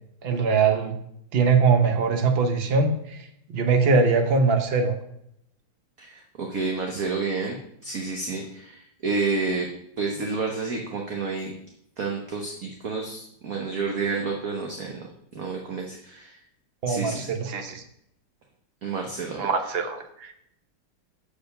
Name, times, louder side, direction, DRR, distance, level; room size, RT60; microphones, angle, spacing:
voice 1, 0.2-1.0 1.3-3.2 3.5-5.0 16.8-17.8 19.4-20.3, right 4 dB, 70° right, 5 dB, 0.5 m, -22 dB
voice 2, 6.0-9.7 10.0-11.5 12.0-15.1 15.3-16.4 16.9-17.3 18.8-19.5, right 4 dB, 50° right, 1 dB, 1.2 m, -30 dB
6.8 x 5.0 x 6.7 m, 0.74 s
omnidirectional pair, 2.4 m